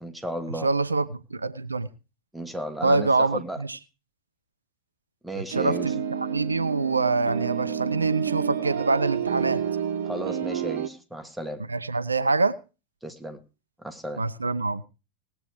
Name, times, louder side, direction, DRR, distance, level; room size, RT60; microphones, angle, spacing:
voice 1, 0.0-0.7 2.3-3.6 5.2-5.9 10.0-11.6 13.0-13.4 13.8-14.2, equal, ahead, 1.4 m, -34 dB
voice 2, 0.6-1.9 2.8-3.8 5.3-9.6 11.7-12.6 14.2-14.8, right 3 dB, 80° right, 0.7 m, -25 dB
sound 1, 5.5-10.9, right 8 dB, 55° right, 1.1 m, -29 dB
18.5 x 8.1 x 4.8 m
figure-of-eight pair, 90°, 0 cm